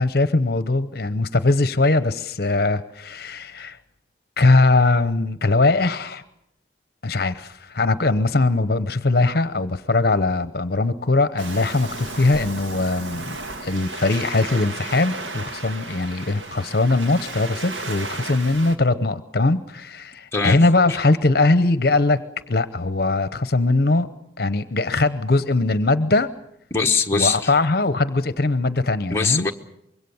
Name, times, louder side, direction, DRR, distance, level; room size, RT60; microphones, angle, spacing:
voice 1, 0.0-3.8 4.4-6.2 7.0-22.2 22.5-24.1 24.4-26.3 27.1-29.5, left 2 dB, 55° left, 0.9 m, -20 dB
Waves surf, 11.4-18.8, right 2 dB, 85° right, 1.8 m, -34 dB
voice 2, 26.7-27.5 29.1-29.5, left 4 dB, 15° left, 1.2 m, -21 dB
25.0 x 22.5 x 7.1 m
head